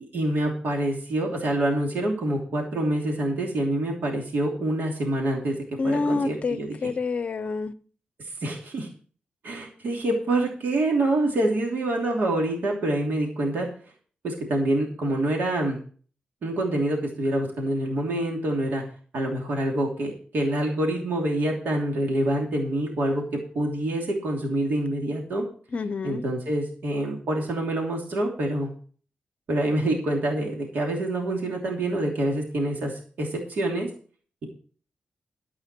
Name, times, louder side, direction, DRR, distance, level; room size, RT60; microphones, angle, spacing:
voice 1, 0.1-5.6 5.8-6.8 8.2-8.9 9.4-13.7 14.2-15.8 16.4-18.8 19.1-23.2 23.5-25.4 26.0-28.7 29.5-33.9, right 1 dB, 70° right, 3.0 m, -26 dB
voice 2, 5.8-7.7 25.7-26.2, left 4 dB, 40° left, 0.7 m, -27 dB
13.0 x 8.6 x 4.4 m
wide cardioid pair, 170°, 3 cm